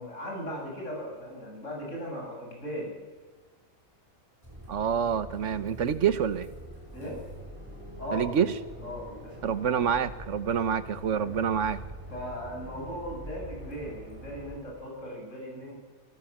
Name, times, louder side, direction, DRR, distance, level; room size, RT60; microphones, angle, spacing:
voice 1, 0.0-2.9 6.9-7.2 8.0-8.3 8.8-9.4 11.1-11.3 12.1-15.8, equal, 65° left, -2 dB, 8.3 m, -38 dB
sound 1, 4.4-14.6, equal, 15° right, 7.6 m, -44 dB
voice 2, 4.7-6.5 8.1-8.5 9.4-11.8, right 8 dB, 65° right, 13 dB, 1.3 m, -27 dB
27.0 x 17.0 x 7.4 m, 1.3 s
omnidirectional pair, 1.4 m